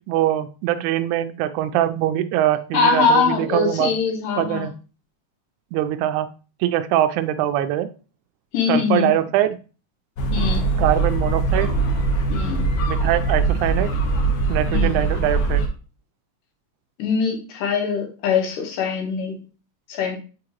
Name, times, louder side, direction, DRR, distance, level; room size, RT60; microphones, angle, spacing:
voice 1, 0.0-3.9 4.4-4.8 5.7-6.3 6.6-7.9 8.7-9.6 10.8-11.8 12.8-13.9 14.5-15.7, right 12 dB, 80° right, 10 dB, 1.8 m, -22 dB
voice 2, 2.7-4.7 8.5-9.1 10.3-10.7 12.3-12.6 14.7-15.0 17.0-19.4 19.9-20.2, left 5 dB, 90° left, 3 dB, 2.8 m, -22 dB
sound 1, 10.2-15.7, right 3 dB, 70° left, 2.3 m, -21 dB
6.9 x 4.8 x 3.0 m, 0.34 s
omnidirectional pair, 3.7 m